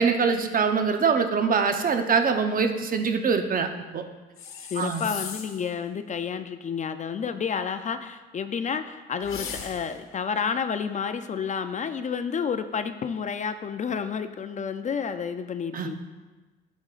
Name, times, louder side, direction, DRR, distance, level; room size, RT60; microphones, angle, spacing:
voice 1, 0.0-4.0 4.8-5.0 15.7-15.9, right 5 dB, 45° right, 7 dB, 0.8 m, -24 dB
sound 1, 4.4-5.7 9.2-10.1, left 6 dB, 70° left, 1.0 m, -38 dB
voice 2, 4.7-16.0, left 6 dB, 35° left, 10 dB, 0.4 m, -30 dB
10.5 x 6.2 x 2.4 m, 1.3 s
supercardioid pair, 75°, 21 cm